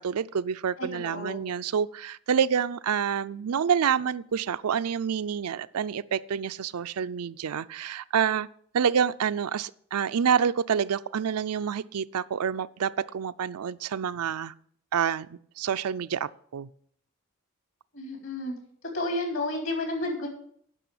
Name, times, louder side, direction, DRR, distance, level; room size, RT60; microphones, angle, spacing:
voice 1, 0.0-8.5 8.7-14.5 14.9-15.3 15.6-16.7, right 7 dB, 85° right, 0.4 m, -27 dB
voice 2, 0.8-1.4 17.9-18.5 18.9-20.3, left 2 dB, 60° left, 3.8 m, -31 dB
10.0 x 6.3 x 8.5 m
head